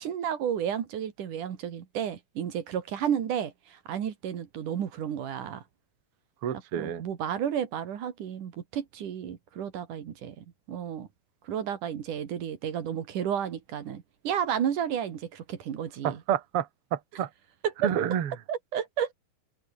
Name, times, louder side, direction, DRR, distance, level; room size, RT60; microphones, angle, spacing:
voice 1, 0.0-5.6 6.8-11.1 11.4-16.2 17.6-17.9 18.5-19.1, right 9 dB, 75° right, 3.6 m, -32 dB
voice 2, 6.4-7.0 16.0-17.3 17.8-18.3, right 9 dB, 50° right, 2.4 m, -29 dB
open air
omnidirectional pair, 3.7 m